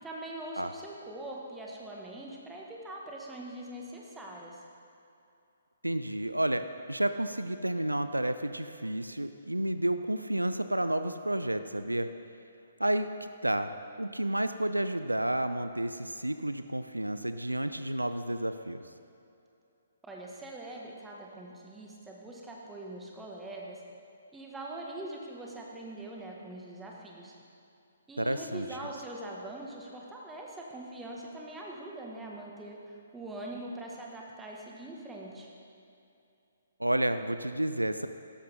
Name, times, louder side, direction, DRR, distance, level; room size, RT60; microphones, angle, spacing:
voice 1, 0.0-4.6 20.0-23.8 24.3-27.3 28.1-35.5, right 1 dB, 10° right, -2 dB, 2.0 m, -43 dB
voice 2, 5.8-12.1 12.8-13.7 14.0-18.8 28.2-28.7 36.8-38.1, right 1 dB, 85° right, 10 dB, 0.5 m, -31 dB
16.5 x 13.5 x 3.8 m, 2.7 s
figure-of-eight pair, 130°, 0 cm